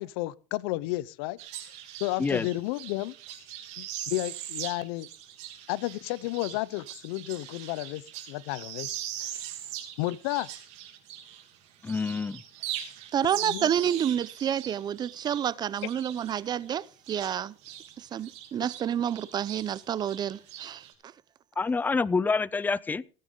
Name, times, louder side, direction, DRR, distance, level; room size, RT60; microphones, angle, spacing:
voice 1, 0.0-1.4 2.0-3.1 3.8-5.1 5.7-8.0 8.3-8.9 9.2-9.3 10.0-10.5 13.4-13.7, left 19 dB, 80° left, 0.6 m, -32 dB
sound 1, 1.4-11.6 11.8-17.9 18.2-20.9, right 11 dB, 65° right, 3.0 m, -41 dB
voice 2, 11.8-12.4 21.6-23.0, left 4 dB, 15° left, 0.5 m, -27 dB
voice 3, 13.1-17.5 18.0-20.8, right 9 dB, 35° right, 0.6 m, -29 dB
16.5 x 9.7 x 3.8 m
supercardioid pair, 115°, 13 cm